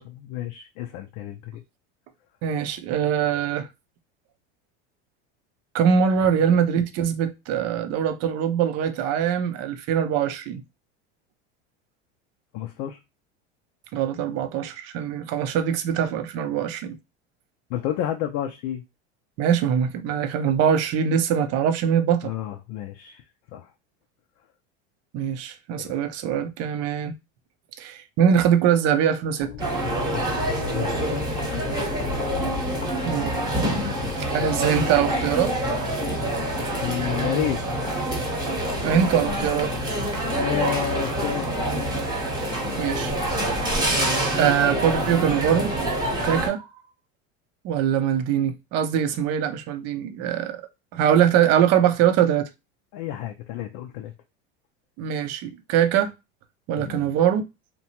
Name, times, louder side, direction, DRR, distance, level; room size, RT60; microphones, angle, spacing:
voice 1, 0.0-1.6 12.5-13.0 17.7-18.8 22.2-23.2 23.5-23.7 25.8-25.9 30.7-31.2 33.7-34.4 36.8-37.6 40.2-41.5 52.9-54.1 56.8-57.0, left 11 dB, 60° left, 0.5 m, -31 dB
voice 2, 2.4-3.7 5.7-10.6 13.9-17.0 19.4-22.3 25.1-27.1 27.8-29.7 33.0-33.3 34.2-35.5 38.8-39.7 42.8-43.1 44.4-45.7 46.2-46.7 47.6-50.6 50.9-52.5 55.0-56.1 56.7-57.4, right 8 dB, 50° right, 0.6 m, -22 dB
sound 1, 29.4-40.7, left 5 dB, 25° left, 0.8 m, -40 dB
sound 2, 29.6-46.5, right 1 dB, 10° right, 1.0 m, -26 dB
2.8 x 2.2 x 2.8 m
supercardioid pair, 110°, 33 cm